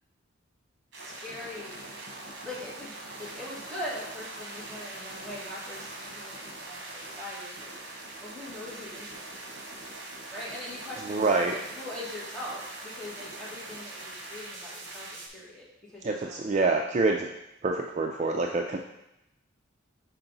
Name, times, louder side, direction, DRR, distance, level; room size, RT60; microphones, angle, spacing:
voice 1, 0.9-1.7 2.4-2.9 3.2-7.7 8.2-9.4 10.3-16.5, left 1 dB, 5° left, -8 dB, 1.8 m, -41 dB
sound 1, 0.9-15.3, right 2 dB, 65° right, 1.2 m, -42 dB
voice 2, 11.1-11.5 16.0-17.3 17.6-18.8, right 3 dB, 35° right, 2 dB, 0.4 m, -26 dB
5.8 x 4.7 x 3.9 m, 0.86 s
head